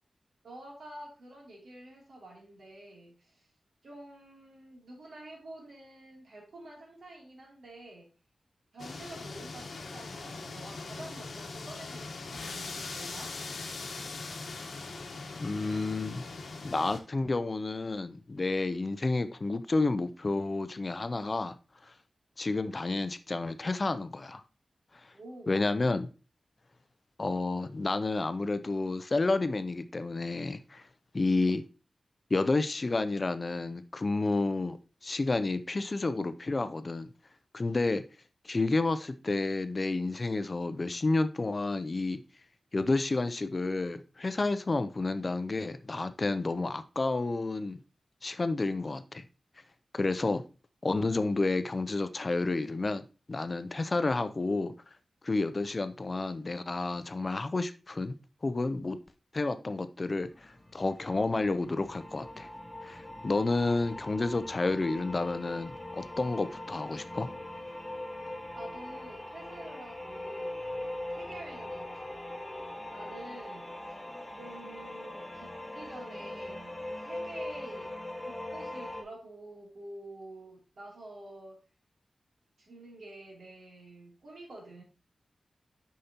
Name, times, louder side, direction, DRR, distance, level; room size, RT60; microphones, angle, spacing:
voice 1, 0.4-3.5 3.8-8.1 8.7-13.4 25.1-25.6 68.5-70.8 71.1-72.3 72.9-73.8 74.4-77.9 78.2-81.6 82.6-84.8, right 1 dB, 75° right, 2.7 m, -48 dB
sound 1, 8.8-17.0, left 3 dB, 85° left, 1.1 m, -41 dB
voice 2, 15.4-16.2 16.6-21.5 21.8-21.9 22.4-24.4 25.5-26.1 27.2-30.8 31.1-31.6 32.3-34.8 35.0-37.1 37.5-38.0 38.4-42.2 42.7-47.8 48.2-49.2 49.9-50.4 50.8-53.0 53.3-54.7 55.2-58.2 58.4-59.0 59.3-62.5 62.8-67.3, left 3 dB, 35° left, 0.5 m, -30 dB
sound 2, 60.2-79.0, left 1 dB, 20° left, 1.0 m, -41 dB
6.5 x 5.6 x 2.8 m
wide cardioid pair, 100°, 0 cm